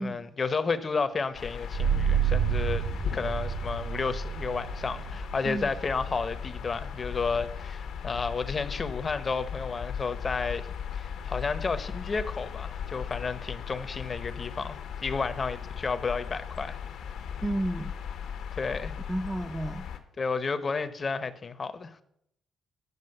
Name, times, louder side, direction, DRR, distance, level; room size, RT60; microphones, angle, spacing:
voice 1, 0.0-2.8 3.1-10.7 10.9-16.8 18.6-19.0 20.2-22.0, left 4 dB, 35° left, 0.8 m, -32 dB
sound 1, 1.3-20.0, left 7 dB, 80° left, 1.1 m, -38 dB
sound 2, 1.7-13.0, right 7 dB, 65° right, 2.3 m, -33 dB
voice 2, 17.4-17.9 19.1-19.9, right 1 dB, 10° right, 0.5 m, -31 dB
9.6 x 5.2 x 6.5 m
cardioid pair, 90°, 0 cm